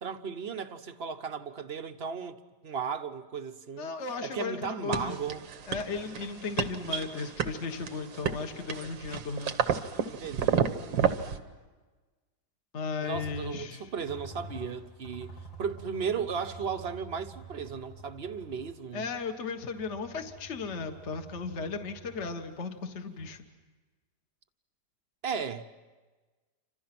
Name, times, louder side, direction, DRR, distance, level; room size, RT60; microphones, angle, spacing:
voice 1, 0.0-2.4 2.6-3.9 4.2-5.4 10.1-10.7 13.0-19.1 25.2-25.6, right 6 dB, 45° right, 0.9 m, -35 dB
voice 2, 3.8-5.2 5.7-9.5 12.7-13.9 18.9-23.5, left 4 dB, 40° left, 1.6 m, -36 dB
sound 1, 4.9-11.4, right 7 dB, 85° right, 1.9 m, -31 dB
sound 2, 13.1-23.4, right 2 dB, 85° left, 3.7 m, -48 dB
29.0 x 26.0 x 6.0 m
omnidirectional pair, 2.0 m